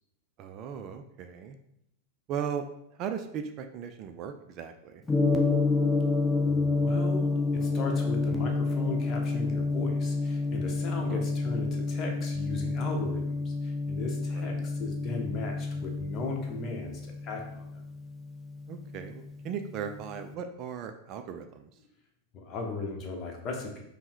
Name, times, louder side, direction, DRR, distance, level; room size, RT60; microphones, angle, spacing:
voice 1, 0.4-1.6 2.3-2.6 3.0-5.0 11.1-11.3 14.3-14.7 18.7-21.7, right 7 dB, 35° right, 7 dB, 0.3 m, -37 dB
Gong, 5.1-19.2, left 3 dB, 10° left, 0.6 m, -29 dB
voice 2, 6.5-17.7 22.3-23.8, left 3 dB, 30° left, 2 dB, 0.9 m, -37 dB
5.3 x 2.1 x 4.4 m, 0.77 s
figure-of-eight pair, 90°, 0 cm